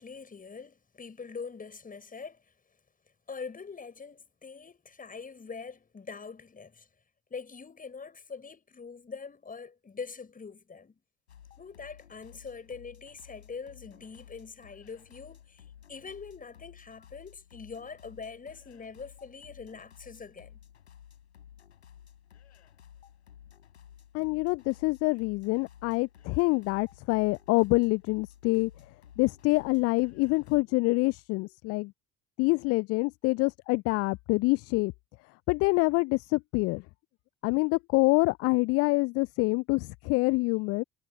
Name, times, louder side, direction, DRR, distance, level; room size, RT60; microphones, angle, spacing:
voice 1, 0.0-2.5 3.3-6.9 7.3-11.0 11.6-20.6, left 5 dB, 25° left, 6.7 m, -43 dB
sound 1, 11.3-30.6, left 9 dB, 80° left, 4.7 m, -54 dB
voice 2, 24.1-28.7 29.2-31.9 32.4-34.9 35.5-36.8 37.4-40.8, left 25 dB, 45° left, 0.4 m, -26 dB
figure-of-eight pair, 60°, 33 cm